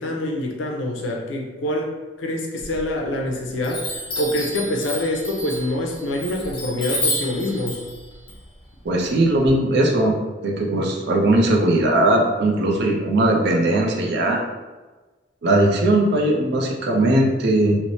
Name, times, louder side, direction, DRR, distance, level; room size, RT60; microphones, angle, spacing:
voice 1, 0.0-1.9 2.2-7.8, left 1 dB, 80° left, 1 dB, 0.5 m, -25 dB
Chime, 2.6-3.3 3.6-9.5, left 1 dB, 25° left, 0.6 m, -30 dB
voice 2, 8.8-10.1 10.4-14.4 15.4-17.8, right 1 dB, 65° right, 0 dB, 0.5 m, -19 dB
3.1 x 2.0 x 2.7 m, 1.2 s
head